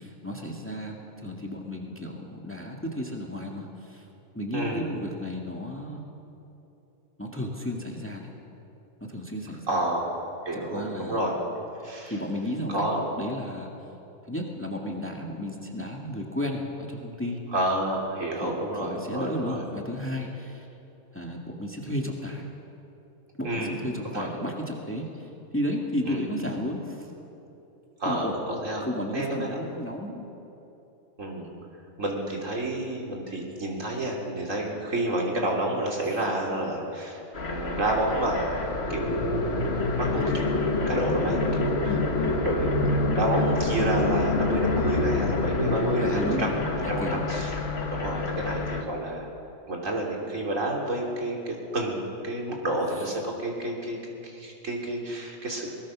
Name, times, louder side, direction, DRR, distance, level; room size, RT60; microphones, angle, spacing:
voice 1, 0.0-4.0 4.3-6.0 7.2-8.3 9.0-9.8 10.5-11.2 12.1-12.9 13.2-13.7 14.3-17.4 18.4-18.5 18.8-20.7 21.1-22.4 23.4-27.1 28.1-28.3 28.8-30.2 41.8-42.1 46.0-46.6 47.0-47.2 52.9-53.1, equal, 10° left, 0 dB, 2.0 m, -33 dB
voice 2, 4.5-4.8 9.7-10.2 10.5-11.3 11.8-12.1 12.7-13.1 17.5-19.6 23.4-23.8 24.1-24.3 26.1-26.3 28.0-28.8 29.1-29.6 31.2-31.5 32.0-37.2 37.5-40.5 40.9-42.0 42.3-42.7 43.1-46.6 46.9-47.5 47.9-49.3 49.7-54.0 54.2-55.7, right 1 dB, 60° right, -1 dB, 3.4 m, -29 dB
sound 1, 37.3-48.8, left 3 dB, 45° left, 1.6 m, -27 dB
21.5 x 20.0 x 6.3 m, 2.9 s
omnidirectional pair, 1.5 m